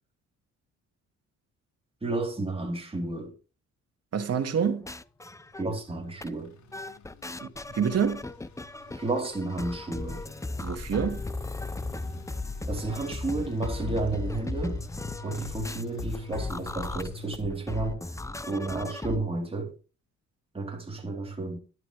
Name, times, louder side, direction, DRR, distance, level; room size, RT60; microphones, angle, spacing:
voice 1, 2.0-3.3 5.6-6.5 8.9-10.2 12.7-14.8 15.2-18.0 18.5-19.7 20.5-21.6, right 2 dB, 20° right, 4.0 m, -32 dB
voice 2, 4.1-4.9 7.4-8.2 10.6-11.2, right 7 dB, 55° right, 2.7 m, -27 dB
sound 1, 4.6-5.9 6.2-6.3 6.7-19.2, left 2 dB, 10° left, 0.8 m, -36 dB
sound 2, 5.4-17.3, left 4 dB, 65° left, 4.2 m, -47 dB
12.5 x 11.5 x 3.5 m
cardioid pair, 90°, 30 cm